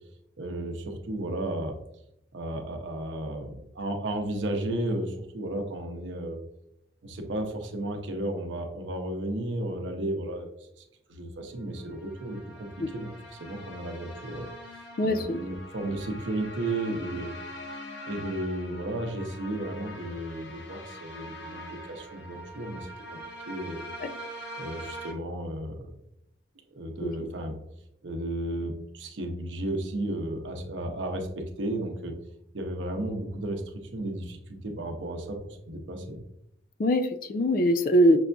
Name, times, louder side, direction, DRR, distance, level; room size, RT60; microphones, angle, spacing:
voice 1, 0.4-1.8 2.3-6.4 7.0-10.8 11.1-14.5 15.0-17.4 18.0-23.8 24.6-25.9 26.7-27.6 28.0-32.2 32.5-35.4 35.7-36.2, right 1 dB, 85° right, 4 dB, 0.7 m, -33 dB
sound 1, 11.7-25.1, equal, 70° left, 0.7 m, -43 dB
voice 2, 15.0-15.4 24.0-24.1 27.0-27.1 36.8-38.2, equal, 50° left, 10 dB, 0.3 m, -22 dB
6.0 x 2.5 x 2.2 m, 0.78 s
head